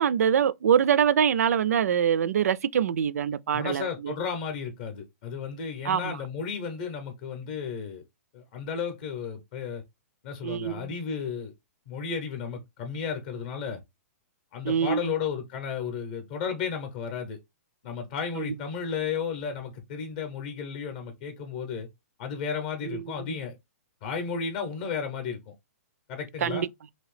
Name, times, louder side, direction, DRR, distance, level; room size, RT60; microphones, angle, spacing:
voice 1, 0.0-4.1 5.8-6.2 10.4-10.9 14.6-15.0 18.4-18.5 22.8-23.4 26.4-26.7, right 8 dB, 70° right, 0.3 m, -24 dB
voice 2, 3.5-8.0 8.3-9.8 10.2-11.5 11.9-13.8 14.5-17.4 17.8-21.9 22.2-23.6 24.0-25.5 26.1-26.6, left 6 dB, 30° left, 0.6 m, -33 dB
2.8 x 2.6 x 3.1 m
hypercardioid pair, 175°, 8 cm